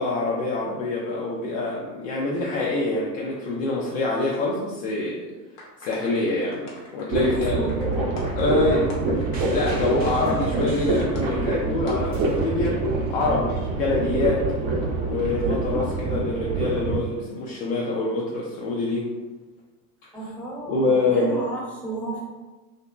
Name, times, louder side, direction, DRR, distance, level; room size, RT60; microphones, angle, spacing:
voice 1, 0.0-5.2 5.8-7.7 8.4-9.2 9.5-12.8 13.1-14.4 15.1-19.1 20.7-21.3, left 2 dB, 45° left, -3 dB, 0.5 m, -25 dB
sound 1, 5.6-11.5 11.9-12.0, left 1 dB, 75° left, 1.0 m, -42 dB
sound 2, 7.1-17.0, right 2 dB, 55° right, 0.7 m, -26 dB
voice 2, 7.2-8.1 20.1-22.2, right 2 dB, ahead, -6 dB, 0.7 m, -32 dB
sound 3, 9.3-11.5 11.9-14.5 15.4-15.5, right 3 dB, 20° right, 0.4 m, -42 dB
2.7 x 2.5 x 2.3 m, 1.2 s
hypercardioid pair, 85°, 50 cm